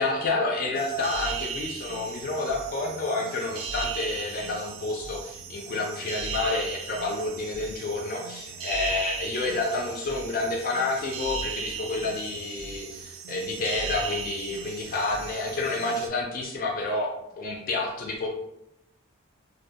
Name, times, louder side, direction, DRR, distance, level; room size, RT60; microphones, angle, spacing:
voice 1, 0.0-18.3, left 2 dB, 40° left, -1 dB, 0.3 m, -29 dB
sound 1, 0.7-16.1, right 6 dB, 65° right, 0.3 m, -37 dB
2.3 x 2.1 x 2.7 m, 0.84 s
head